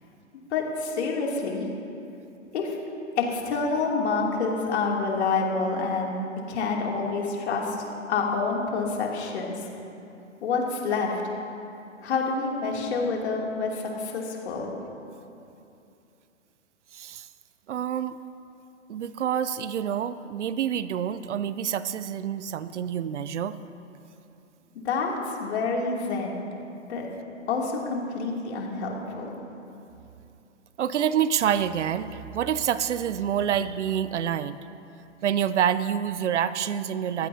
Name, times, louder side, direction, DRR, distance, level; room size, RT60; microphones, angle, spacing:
voice 1, 0.5-1.7 2.5-2.8 3.2-6.1 6.5-7.8 8.1-9.6 10.4-11.2 12.0-14.7 24.7-26.4 26.9-27.1 27.5-29.4, left 4 dB, 60° left, -1 dB, 3.0 m, -27 dB
voice 2, 16.9-17.3 17.7-18.2 18.9-23.6 30.8-34.6 35.2-37.3, right 9 dB, 65° right, 14 dB, 0.7 m, -27 dB
22.5 x 15.5 x 2.8 m, 2.7 s
hypercardioid pair, 120°, 38 cm